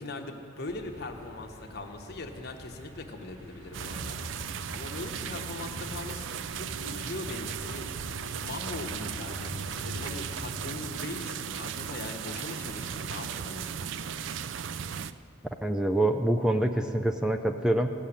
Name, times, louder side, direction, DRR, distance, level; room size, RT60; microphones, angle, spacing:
voice 1, 0.0-4.2 4.7-7.9 8.4-13.7, left 2 dB, 55° left, 4 dB, 1.2 m, -40 dB
sound 1, 0.7-10.6, equal, 40° right, 2.8 m, -44 dB
sound 2, 3.7-15.1, right 8 dB, 70° right, 0.4 m, -37 dB
voice 2, 15.6-17.9, right 1 dB, 5° right, 5 dB, 0.4 m, -26 dB
15.5 x 7.4 x 10.0 m, 2.7 s
head